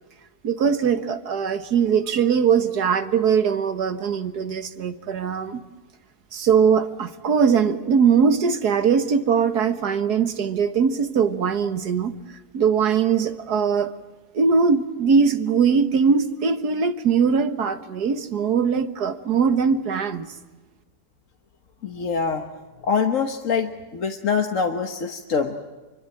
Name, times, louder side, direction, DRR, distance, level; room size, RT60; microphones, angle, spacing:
voice 1, 0.4-5.6 6.3-12.1 12.5-13.9 14.3-20.3, right 6 dB, 90° right, 10 dB, 2.0 m, -21 dB
voice 2, 21.8-22.4 22.8-25.6, left 5 dB, 55° left, 4 dB, 1.6 m, -24 dB
26.0 x 24.0 x 9.0 m, 1.2 s
omnidirectional pair, 1.6 m